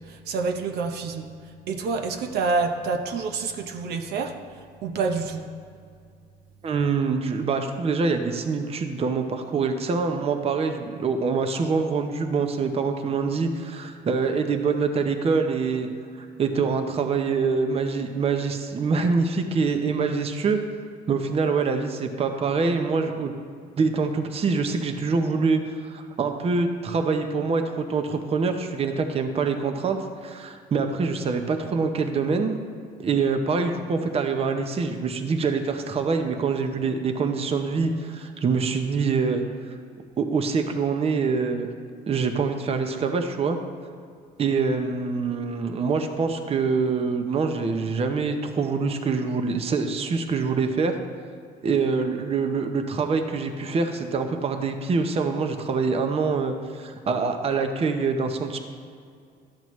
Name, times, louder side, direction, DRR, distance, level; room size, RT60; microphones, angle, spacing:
voice 1, 0.0-1.3 1.7-4.3 4.8-5.5, right 4 dB, 75° right, 5 dB, 0.7 m, -27 dB
voice 2, 6.6-15.9 16.2-20.6 21.1-23.3 23.8-32.6 33.0-39.4 40.2-41.7 42.1-43.6 44.4-51.0 51.6-58.6, right 4 dB, 35° right, 6 dB, 0.7 m, -25 dB
12.0 x 7.5 x 3.1 m, 2.3 s
cardioid pair, 110°, 17 cm